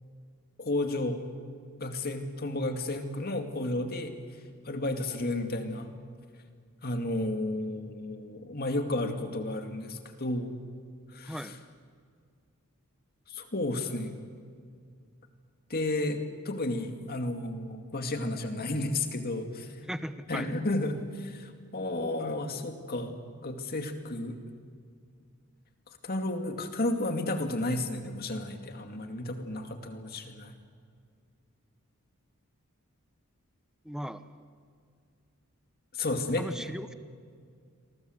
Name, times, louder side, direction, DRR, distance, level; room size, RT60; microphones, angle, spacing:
voice 1, 0.6-1.2 1.8-4.1 4.6-5.9 6.8-10.5 11.1-11.5 13.3-14.2 15.7-19.8 20.3-23.2 23.4-24.4 26.0-30.5 35.9-36.7, left 2 dB, 45° left, 6 dB, 2.4 m, -32 dB
voice 2, 11.2-11.6 19.8-20.5 33.8-34.2 36.4-36.9, equal, 5° right, 11 dB, 1.0 m, -37 dB
29.0 x 23.0 x 8.1 m, 2.2 s
head